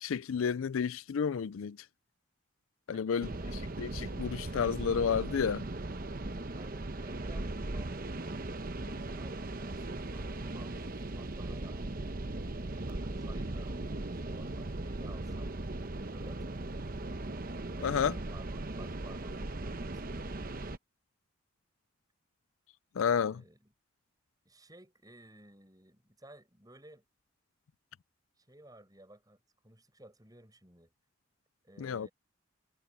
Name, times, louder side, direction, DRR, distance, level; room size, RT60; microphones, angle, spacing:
voice 1, 0.0-1.8 2.9-3.3 3.8-5.6 17.8-18.1 23.0-23.4 31.8-32.1, left 7 dB, 90° left, 0.4 m, -31 dB
voice 2, 2.9-3.5 6.5-8.2 9.0-11.9 12.4-13.8 14.1-15.5 16.1-17.0 17.7-20.5 23.1-23.7 24.4-27.0 28.4-30.9 31.6-32.1, right 1 dB, 20° right, 6.4 m, -56 dB
sound 1, 3.2-20.8, right 2 dB, 45° right, 1.0 m, -38 dB
head